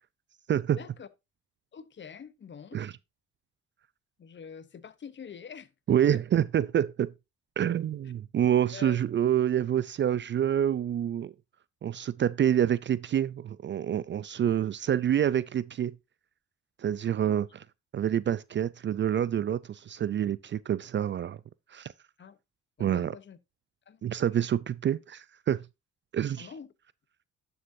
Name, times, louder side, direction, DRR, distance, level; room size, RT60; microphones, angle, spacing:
voice 1, 0.7-1.1 1.7-2.9 4.2-6.2 8.7-9.0 17.2-17.4 22.2-22.4 22.8-23.4 23.9-24.5 26.4-26.7, left 7 dB, 40° left, 0.8 m, -46 dB
voice 2, 5.9-7.1 7.6-11.3 11.8-16.0 16.8-17.5 17.9-21.4 21.7-21.9 22.8-23.1 24.0-25.6 26.1-26.5, right 10 dB, 40° right, 0.4 m, -27 dB
11.0 x 6.6 x 2.6 m
cardioid pair, 90°, 30 cm